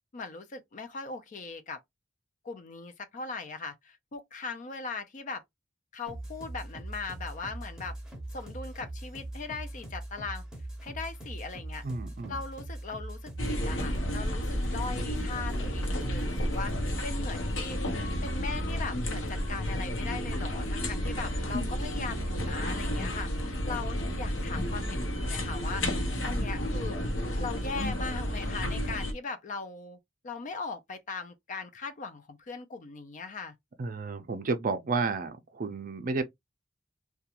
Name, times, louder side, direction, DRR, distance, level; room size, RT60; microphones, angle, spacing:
voice 1, 0.1-1.8 2.4-5.4 5.9-7.9 8.3-10.4 10.8-11.8 12.3-17.8 18.2-25.8 26.2-30.0 30.2-33.5, left 4 dB, 40° left, 0.4 m, -39 dB
sound 1, 6.1-17.1, right 1 dB, 5° right, 0.7 m, -41 dB
voice 2, 11.8-12.3 33.8-36.2, right 4 dB, 45° right, 0.4 m, -31 dB
sound 2, 13.4-29.1, equal, 70° left, 0.8 m, -31 dB
2.4 x 2.3 x 2.8 m
head